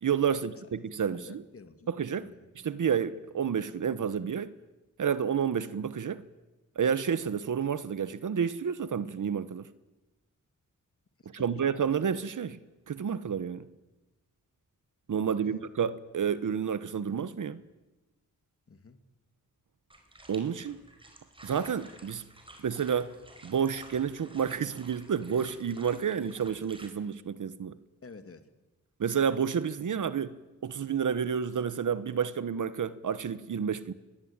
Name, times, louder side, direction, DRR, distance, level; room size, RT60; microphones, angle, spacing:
voice 1, 0.0-1.4 1.9-2.3 2.5-4.5 5.0-6.2 6.8-9.6 11.3-12.6 12.9-13.6 15.1-17.6 20.3-20.8 21.4-22.2 22.6-23.2 23.4-27.8 29.0-30.4 30.6-33.9, right 7 dB, 70° right, 1.2 m, -30 dB
voice 2, 1.2-1.9 2.2-2.5 11.2-11.7 15.3-15.6 18.7-19.0 28.0-28.5, left 4 dB, 45° left, 2.4 m, -50 dB
sound 1, 19.9-26.9, right 1 dB, 15° right, 4.7 m, -53 dB
29.5 x 22.5 x 8.9 m
wide cardioid pair, 135°, 32 cm